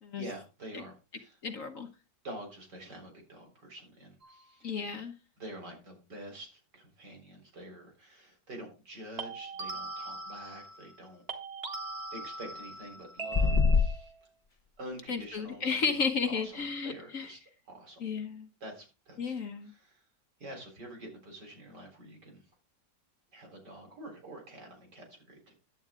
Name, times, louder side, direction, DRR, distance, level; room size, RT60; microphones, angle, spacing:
voice 1, 0.1-1.4 2.2-4.7 5.4-11.2 12.1-14.1 14.8-16.0 16.3-17.4 17.7-18.0 18.6-19.3 19.6-20.0 20.4-22.4 23.3-25.5, right 1 dB, 65° right, 2 dB, 4.5 m, -47 dB
voice 2, 1.4-1.9 4.6-5.1 15.1-17.3 18.0-18.5 19.2-19.7, left 5 dB, 50° left, 6 dB, 1.4 m, -33 dB
sound 1, 4.2-4.5 9.2-11.0 11.3-14.2, right 3 dB, 35° right, 1.8 m, -41 dB
sound 2, 13.3-13.9, left 4 dB, 25° left, 0.9 m, -23 dB
11.0 x 8.7 x 3.7 m, 0.31 s
omnidirectional pair, 1.9 m